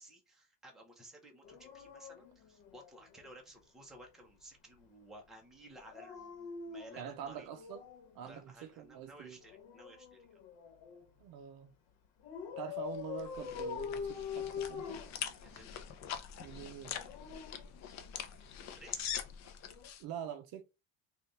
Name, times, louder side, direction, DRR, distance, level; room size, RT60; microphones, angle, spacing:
voice 1, 0.0-7.5 8.2-10.4 15.4-15.7 18.7-19.1, right 1 dB, ahead, 0.7 m, -56 dB
Dog, 1.4-3.3 5.8-8.1 9.4-11.1 12.2-15.8 16.8-18.4 19.7-19.9, left 7 dB, 70° left, 1.1 m, -44 dB
voice 2, 7.0-7.8 8.1-9.4 11.2-11.7 12.6-15.0 16.4-17.0 20.0-20.6, right 9 dB, 50° right, 0.6 m, -45 dB
sound 1, 12.9-20.0, left 9 dB, 40° left, 0.5 m, -44 dB
3.3 x 2.4 x 3.9 m
cardioid pair, 160°, 46 cm